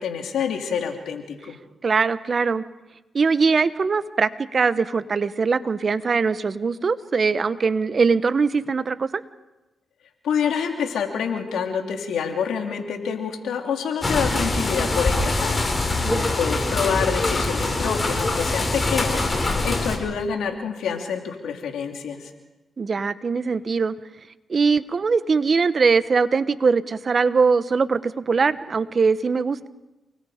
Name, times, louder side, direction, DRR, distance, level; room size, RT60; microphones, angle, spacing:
voice 1, 0.0-1.6 10.2-15.6 16.4-22.3, left 7 dB, 85° left, 3 dB, 3.2 m, -27 dB
voice 2, 1.8-2.6 3.1-9.2 16.0-16.3 22.8-23.9 24.5-29.7, right 5 dB, 50° right, 14 dB, 1.0 m, -21 dB
sound 1, 14.0-20.0, left 2 dB, 35° left, 5.2 m, -23 dB
29.5 x 20.5 x 5.1 m, 1.1 s
cardioid pair, 60°, 0 cm